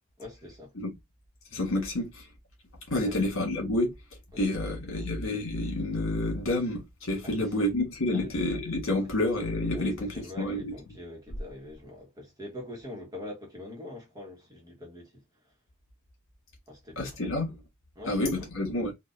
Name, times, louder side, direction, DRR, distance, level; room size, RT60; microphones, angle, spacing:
voice 1, 0.2-0.7 3.0-3.2 4.8-5.1 7.2-7.5 8.1-8.3 9.7-15.2 16.7-17.3 17.9-18.2, left 1 dB, 20° right, 1.2 m, -43 dB
voice 2, 1.5-2.2 2.9-3.9 4.4-10.7 16.9-17.6 18.1-18.9, left 1 dB, 75° left, 1.6 m, -29 dB
3.9 x 2.5 x 2.6 m
head